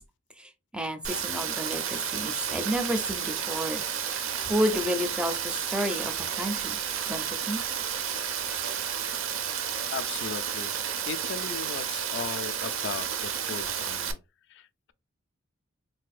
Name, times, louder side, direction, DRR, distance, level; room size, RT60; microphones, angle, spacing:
voice 1, 0.4-3.8 4.1-6.8 7.1-7.6, equal, 5° right, 0.4 m, -31 dB
Rain, 1.0-14.1, right 8 dB, 70° right, 0.6 m, -31 dB
voice 2, 9.9-10.7 11.0-14.2 14.5-14.9, left 6 dB, 60° left, 0.3 m, -37 dB
3.8 x 2.6 x 2.4 m
head